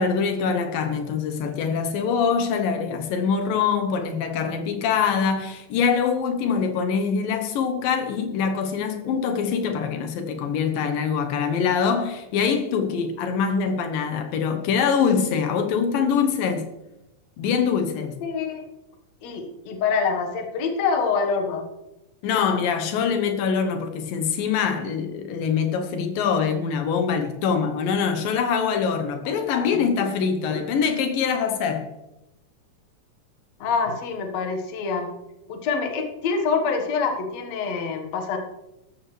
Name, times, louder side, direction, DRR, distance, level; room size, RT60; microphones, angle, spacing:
voice 1, 0.0-16.6 17.4-18.2 22.2-31.9, left 6 dB, 85° left, 2.8 m, -24 dB
voice 2, 18.2-18.6 19.2-21.7 29.3-29.8 33.6-35.1 35.5-38.4, left 5 dB, 55° left, 2.4 m, -26 dB
13.5 x 12.5 x 3.3 m
omnidirectional pair, 3.9 m